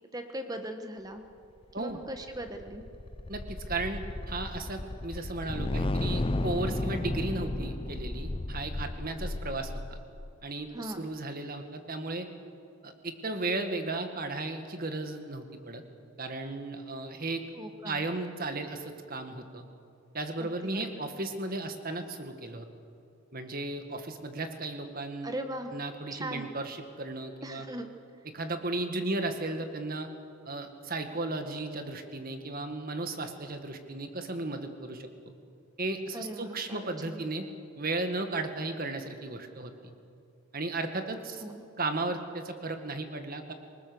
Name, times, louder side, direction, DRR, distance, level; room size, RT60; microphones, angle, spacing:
voice 1, 0.1-1.2 1.7-2.8 10.7-11.1 17.6-18.0 20.4-20.9 25.2-25.7 26.1-26.5 27.4-27.9 36.1-37.2 41.4-41.6, right 1 dB, 15° right, 6 dB, 1.3 m, -39 dB
sound 1, 2.0-10.4, left 2 dB, 25° left, 0.5 m, -34 dB
voice 2, 3.3-4.0 4.3-10.0 10.4-12.3 12.8-15.8 16.2-17.4 17.8-19.6 20.1-22.7 23.3-25.3 25.7-27.7 28.3-30.1 30.5-35.1 35.8-37.5 37.8-39.9 40.5-41.4 41.8-43.5, right 2 dB, 40° right, 7 dB, 1.8 m, -35 dB
26.5 x 19.5 x 7.0 m, 2.5 s
head